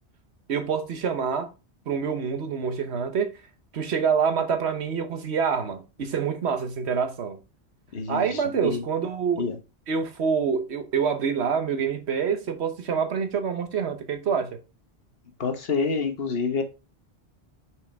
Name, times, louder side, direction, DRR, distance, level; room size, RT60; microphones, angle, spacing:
voice 1, 0.5-1.5 1.9-3.3 3.7-7.4 8.1-9.4 9.9-14.6, right 6 dB, 70° right, 1.2 m, -26 dB
voice 2, 7.9-8.9 9.4-9.6 15.4-16.6, left 5 dB, 60° left, 1.3 m, -27 dB
6.0 x 4.9 x 3.4 m
omnidirectional pair, 1.2 m